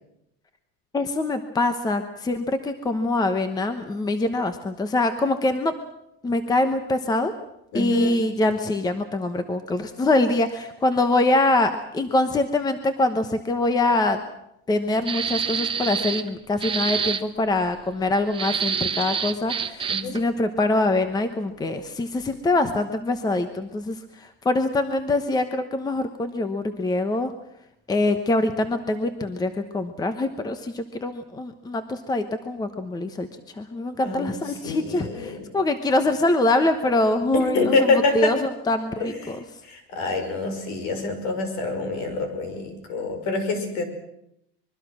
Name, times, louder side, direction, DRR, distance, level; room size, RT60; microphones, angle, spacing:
voice 1, 0.9-5.7 6.2-7.3 7.7-14.2 14.7-27.3 27.9-33.3 33.6-39.4, left 2 dB, 10° left, 9 dB, 1.1 m, -24 dB
voice 2, 7.7-8.3 19.9-20.1 34.0-35.5 37.3-38.3 39.0-39.4 39.7-43.8, left 3 dB, 60° left, 7 dB, 5.9 m, -26 dB
sound 1, 15.1-16.3 16.6-17.2 18.3-20.2, right 7 dB, 15° right, 1.0 m, -27 dB
25.0 x 22.5 x 6.2 m, 0.78 s
cardioid pair, 160°, 32 cm